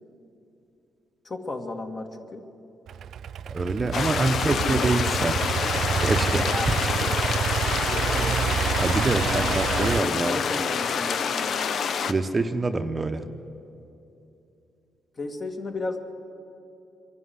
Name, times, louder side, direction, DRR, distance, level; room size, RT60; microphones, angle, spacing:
voice 1, 1.2-2.4 4.3-5.2 6.5-6.7 7.0-7.4 7.9-8.6 9.3-11.8 15.2-16.0, left 2 dB, 35° left, 4 dB, 2.2 m, -34 dB
Idling / Accelerating revving vroom, 2.9-10.0, right 8 dB, 65° right, 0.4 m, -28 dB
voice 2, 3.4-5.3 6.0-6.8 8.8-10.4 12.1-13.3, right 3 dB, 25° right, 8 dB, 0.9 m, -26 dB
sound 1, 3.9-12.1, left 6 dB, 60° left, 0.8 m, -27 dB
24.5 x 11.5 x 9.6 m, 2.8 s
cardioid pair, 90°, 0 cm